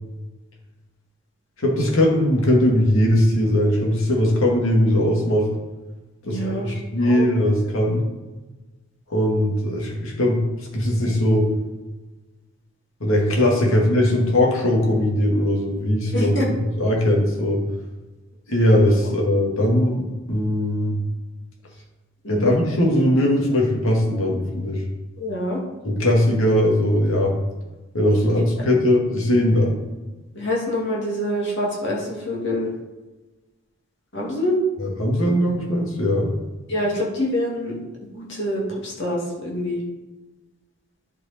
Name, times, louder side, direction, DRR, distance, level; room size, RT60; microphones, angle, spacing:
voice 1, 1.6-5.5 6.3-8.0 9.1-10.4 10.7-11.5 13.0-17.6 18.5-21.0 22.3-24.8 25.8-27.3 27.9-29.7 34.8-36.3, left 1 dB, 75° left, -1 dB, 2.1 m, -20 dB
voice 2, 6.2-6.7 7.0-7.3 13.7-13.8 16.1-16.5 22.2-22.6 25.2-25.6 28.3-28.4 30.3-32.7 34.1-34.6 36.7-37.8 38.1-39.8, left 1 dB, 60° left, -3 dB, 2.4 m, -26 dB
10.5 x 4.9 x 4.3 m, 1.2 s
head